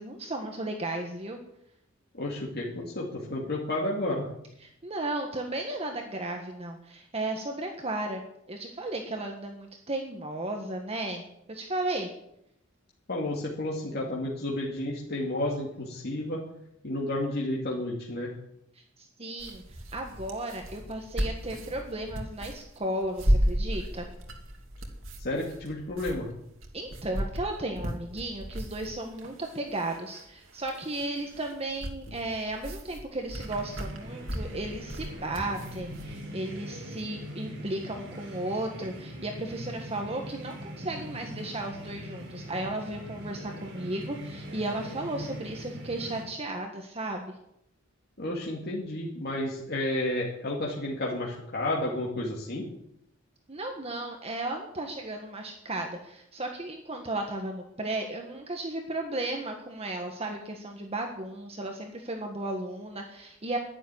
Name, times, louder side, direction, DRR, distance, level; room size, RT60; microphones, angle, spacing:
voice 1, 0.0-1.4 4.6-8.2 8.5-12.1 18.7-24.1 26.7-47.3 53.5-63.6, right 2 dB, 30° right, 3 dB, 1.5 m, -35 dB
voice 2, 2.1-4.3 13.1-16.4 16.8-18.3 25.2-26.3 48.2-52.7, left 1 dB, 50° left, -3 dB, 2.4 m, -31 dB
sound 1, 19.4-36.2, equal, 85° right, 2.6 m, -34 dB
sound 2, 33.3-46.2, equal, 60° right, 4.6 m, -42 dB
11.0 x 10.5 x 9.8 m, 0.80 s
head